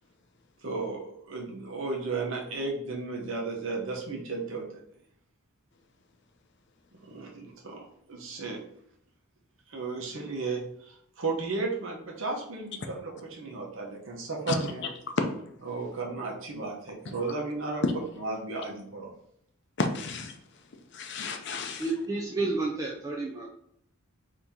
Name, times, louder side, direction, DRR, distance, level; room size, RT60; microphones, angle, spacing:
voice 1, 0.6-4.8 7.0-8.6 9.7-14.8 15.6-17.8 18.2-19.1, right 3 dB, 60° right, 0 dB, 0.9 m, -34 dB
voice 2, 19.8-20.3 20.9-21.8, left 3 dB, 50° left, 5 dB, 0.6 m, -30 dB
voice 3, 21.8-23.5, right 3 dB, 15° right, -3 dB, 0.4 m, -30 dB
4.2 x 2.9 x 3.6 m, 0.71 s
head